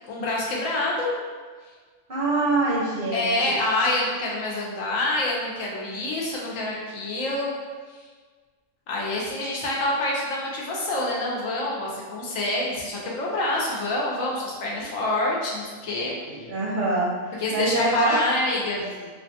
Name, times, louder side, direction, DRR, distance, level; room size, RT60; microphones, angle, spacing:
voice 1, 0.1-1.1 3.1-7.5 8.9-16.2 17.4-19.1, left 2 dB, 80° left, -4 dB, 1.2 m, -26 dB
voice 2, 2.1-3.3 16.3-18.2, right 2 dB, 50° right, -6 dB, 0.7 m, -25 dB
4.7 x 2.2 x 2.7 m, 1.5 s
omnidirectional pair, 1.4 m